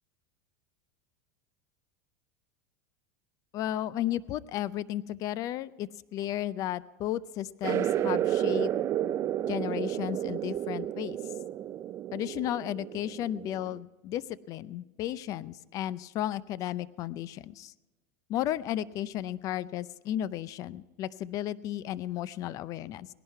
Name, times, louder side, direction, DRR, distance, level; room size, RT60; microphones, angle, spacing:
voice 1, 3.5-8.7 9.5-11.2 12.1-14.2 14.5-17.7 18.3-23.1, left 12 dB, 40° left, 18 dB, 0.5 m, -34 dB
sound 1, 7.6-13.8, right 11 dB, 35° right, 0.4 m, -31 dB
18.5 x 11.0 x 4.6 m, 1.2 s
supercardioid pair, 130°, 9 cm